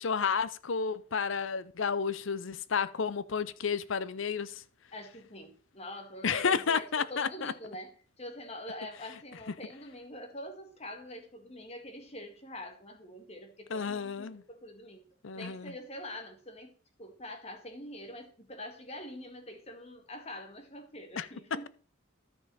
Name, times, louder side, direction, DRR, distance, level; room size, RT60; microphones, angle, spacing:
voice 1, 0.0-4.6 6.2-7.5 13.7-14.4 15.2-15.7 21.2-21.3, left 6 dB, 70° left, 0.6 m, -31 dB
voice 2, 4.9-7.9 8.2-15.0 15.3-16.7 17.0-21.7, left 1 dB, 30° left, 1.7 m, -45 dB
13.5 x 5.5 x 4.2 m
head